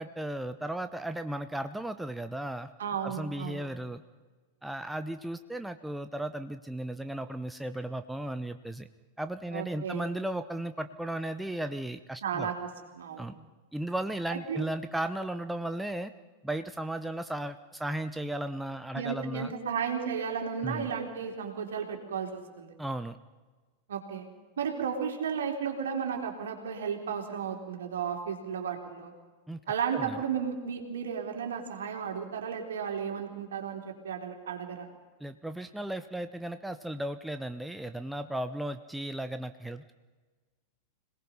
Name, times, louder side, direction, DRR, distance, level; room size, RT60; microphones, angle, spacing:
voice 1, 0.0-2.7 3.0-4.0 4.6-8.9 9.2-12.5 13.2-13.3 13.7-16.1 16.4-19.5 20.6-20.9 22.8-23.2 29.5-29.6 29.9-30.2 35.2-39.9, right 1 dB, 5° right, 9 dB, 0.7 m, -35 dB
voice 2, 2.8-3.7 9.5-10.0 12.2-13.3 14.3-14.7 18.9-22.7 23.9-24.3 24.6-29.1 29.7-34.9, right 7 dB, 65° right, 3 dB, 3.3 m, -34 dB
26.0 x 18.5 x 5.6 m, 1.3 s
figure-of-eight pair, 90°, 0 cm